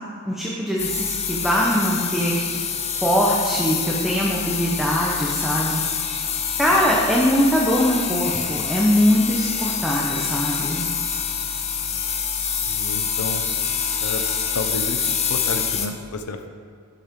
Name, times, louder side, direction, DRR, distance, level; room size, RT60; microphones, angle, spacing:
voice 1, 0.3-2.3 3.0-5.8 6.6-10.8, equal, ahead, -5 dB, 0.9 m, -21 dB
sound 1, 0.8-15.9, left 6 dB, 30° left, 0.7 m, -26 dB
voice 2, 12.7-13.5 14.0-14.2 14.5-16.5, left 2 dB, 90° left, 7 dB, 0.7 m, -31 dB
12.0 x 7.4 x 3.7 m, 2.3 s
head